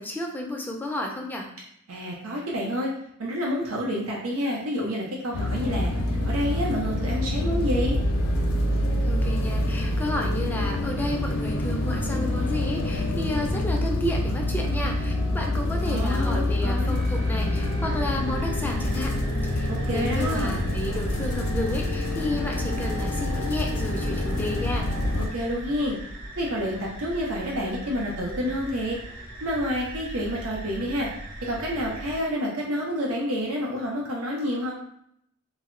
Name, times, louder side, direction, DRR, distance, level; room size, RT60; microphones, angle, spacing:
voice 1, 0.0-1.5 9.1-19.1 19.4-24.9, left 1 dB, 10° left, 0 dB, 0.3 m, -32 dB
voice 2, 1.9-2.9 3.2-5.9 6.2-8.0 15.9-17.0 19.7-20.6 25.2-26.0 26.4-29.0 29.4-31.1 31.4-34.7, equal, 90° right, -3 dB, 0.6 m, -28 dB
sound 1, 5.3-25.3, left 1 dB, 90° left, 0.5 m, -26 dB
sound 2, 16.9-32.2, right 1 dB, 50° right, 0.7 m, -39 dB
2.1 x 2.0 x 3.6 m, 0.72 s
head